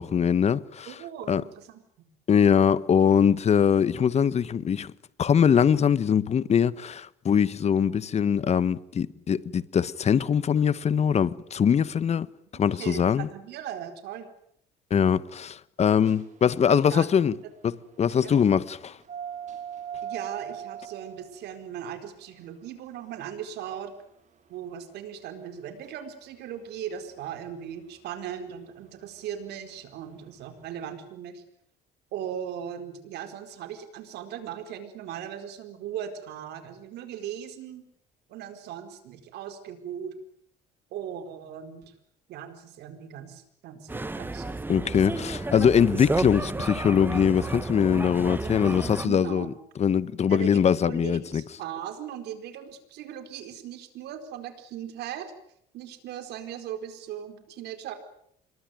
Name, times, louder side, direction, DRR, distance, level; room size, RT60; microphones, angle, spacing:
voice 1, 0.0-0.9 1.3-1.4 2.3-4.9 5.2-12.3 12.5-13.3 14.9-17.3 17.6-19.0 44.7-49.5 49.8-51.4, left 7 dB, 40° left, 1.3 m, -22 dB
voice 2, 0.9-2.1 12.5-14.3 16.6-17.2 18.2-18.3 20.0-23.9 24.5-31.4 32.1-37.9 38.3-40.1 40.9-41.9 42.3-45.0 46.6-46.9 49.0-49.6 50.3-55.3 55.7-57.9, right 9 dB, 80° right, 4.5 m, -38 dB
sound 1, 16.0-30.7, right 9 dB, 45° right, 5.7 m, -43 dB
sound 2, 43.9-49.1, right 2 dB, 10° right, 1.5 m, -32 dB
27.0 x 22.5 x 9.3 m
cardioid pair, 110°, 17 cm